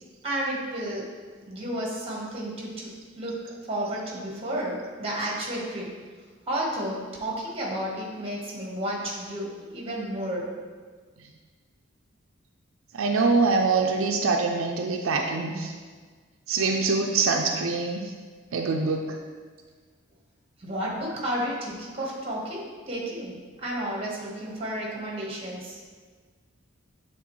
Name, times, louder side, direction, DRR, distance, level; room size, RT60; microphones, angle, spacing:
voice 1, 0.2-1.1 1.4-2.9 3.1-3.4 3.7-5.9 6.5-10.5 20.6-25.8, right 1 dB, 30° right, -3 dB, 1.3 m, -32 dB
voice 2, 12.9-15.7 16.5-18.1 18.5-19.2, right 4 dB, 85° right, 2 dB, 0.5 m, -24 dB
8.2 x 3.7 x 3.1 m, 1.5 s
head